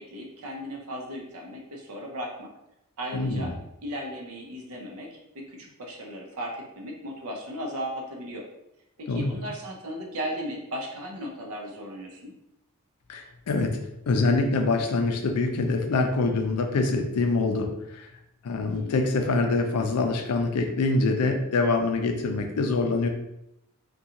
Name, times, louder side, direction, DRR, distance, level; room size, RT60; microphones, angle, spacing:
voice 1, 0.0-2.5 3.0-3.5 3.8-8.4 9.0-12.3 18.7-19.0, equal, 75° right, -1 dB, 0.7 m, -36 dB
voice 2, 3.1-3.5 9.1-9.3 13.1-13.8 14.1-18.1 18.4-23.1, left 3 dB, 85° left, 5 dB, 0.4 m, -25 dB
2.5 x 2.2 x 2.8 m, 0.84 s
head